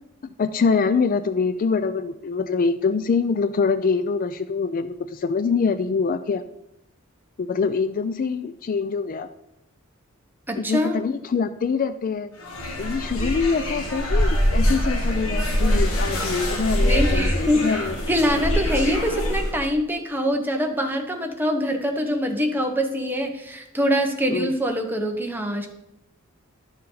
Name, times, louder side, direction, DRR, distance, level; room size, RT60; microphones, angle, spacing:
voice 1, 0.4-6.4 7.4-9.3 10.6-12.3 12.8-18.0 24.3-24.5, left 5 dB, 40° left, 12 dB, 0.3 m, -24 dB
voice 2, 10.5-11.0 16.8-17.8 18.1-25.7, equal, 10° right, 3 dB, 1.0 m, -24 dB
sound 1, 12.4-19.6, equal, 70° left, 1.8 m, -23 dB
11.5 x 6.7 x 3.9 m, 0.87 s
head